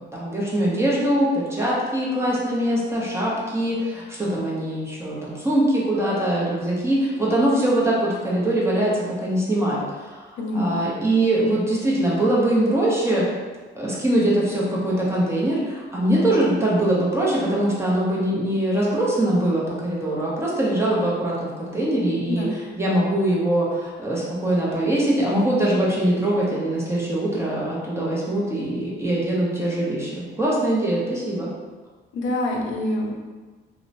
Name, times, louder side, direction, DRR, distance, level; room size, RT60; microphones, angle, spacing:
voice 1, 0.0-13.3 13.7-22.5 22.8-31.5, right 1 dB, 15° right, -6 dB, 0.7 m, -22 dB
voice 2, 10.4-10.8 22.3-22.5 32.1-33.1, left 1 dB, 75° left, -1 dB, 0.5 m, -26 dB
2.8 x 2.1 x 2.5 m, 1.3 s
cardioid pair, 90°, 20 cm